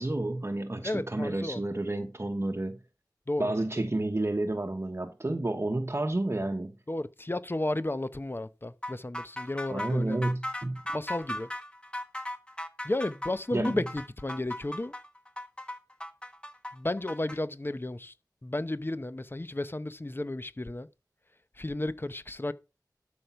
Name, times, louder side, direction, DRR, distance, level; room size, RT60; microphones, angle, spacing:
voice 1, 0.0-2.8 3.4-6.7 9.7-10.8 13.5-13.7, right 2 dB, 40° right, 1.0 m, -30 dB
voice 2, 0.8-1.6 3.3-3.6 6.9-10.2 10.9-11.5 12.8-14.9 16.7-18.1 18.4-20.9 21.6-22.5, left 1 dB, 30° left, 0.8 m, -33 dB
sound 1, 8.8-17.4, left 1 dB, 15° left, 1.4 m, -37 dB
12.5 x 5.2 x 5.8 m
wide cardioid pair, 60°, 7 cm